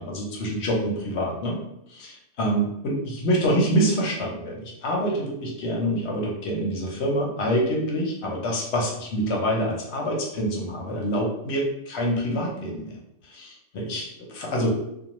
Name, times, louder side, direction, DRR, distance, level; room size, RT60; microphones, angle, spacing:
voice 1, 0.0-1.6 1.9-13.0 13.3-14.7, equal, 60° left, -1 dB, 0.8 m, -26 dB
2.3 x 2.2 x 2.9 m, 0.79 s
omnidirectional pair, 1.5 m